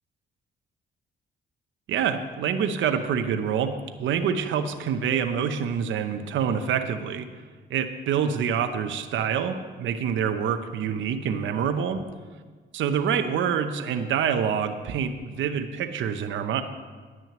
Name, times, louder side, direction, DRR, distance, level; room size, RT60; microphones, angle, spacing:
voice 1, 1.9-7.3 7.7-12.1 12.7-16.6, right 7 dB, 70° right, 7 dB, 0.8 m, -26 dB
10.5 x 6.2 x 8.7 m, 1.5 s
cardioid pair, 90°, 20 cm